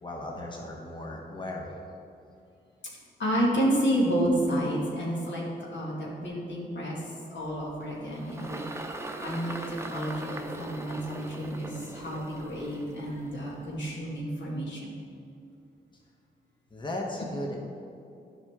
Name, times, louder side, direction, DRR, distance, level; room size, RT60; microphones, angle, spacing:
voice 1, 0.0-1.8 15.9-16.0 16.7-17.6, left 1 dB, 25° left, -1 dB, 1.1 m, -36 dB
voice 2, 3.2-5.4 5.7-7.0 7.3-8.6 9.2-14.9, equal, 75° left, -5 dB, 2.0 m, -30 dB
Engine, 7.5-14.1, right 2 dB, 15° right, 0.7 m, -41 dB
10.5 x 5.5 x 3.7 m, 2.6 s
cardioid pair, 70°, 19 cm